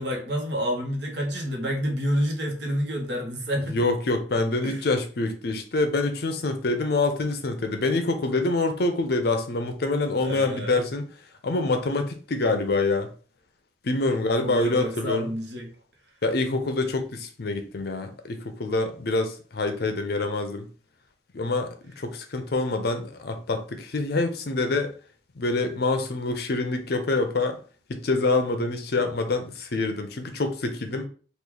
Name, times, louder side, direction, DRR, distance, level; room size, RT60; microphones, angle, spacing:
voice 1, 0.0-3.8 4.6-4.8 10.2-10.8 14.4-15.7, equal, 65° right, 1.0 m, -29 dB
voice 2, 3.7-11.1 11.4-13.1 13.8-15.3 16.2-20.7 21.3-24.9 25.4-27.6 27.9-31.1, left 2 dB, 55° left, 0.5 m, -26 dB
3.1 x 2.4 x 3.8 m
head